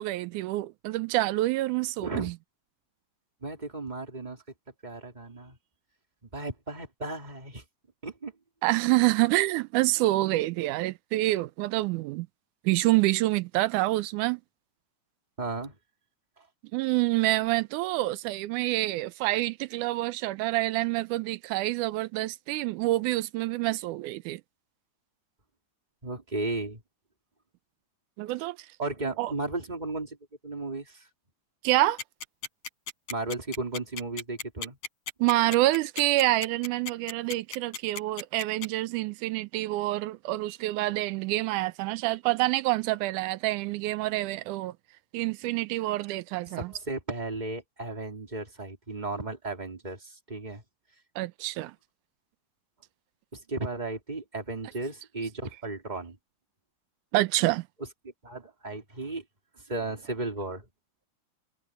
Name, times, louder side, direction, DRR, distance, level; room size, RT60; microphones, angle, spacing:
voice 1, 0.0-2.3 8.6-12.3 12.7-14.4 16.7-24.4 28.2-28.6 29.2-29.3 31.6-32.0 35.2-44.7 45.1-46.7 51.2-51.7 57.1-57.6, right 18 dB, 90° right, 2.1 m, -27 dB
voice 2, 3.4-4.4 4.8-5.6 6.3-7.6 8.0-8.3 15.4-15.8 26.0-26.8 28.8-30.2 30.4-31.1 33.1-34.8 46.6-50.6 53.3-56.2 58.2-59.2 59.7-60.6, right 2 dB, 15° right, 3.2 m, -35 dB
sound 1, 32.0-38.7, left 5 dB, 65° left, 6.1 m, -34 dB
omnidirectional pair, 3.5 m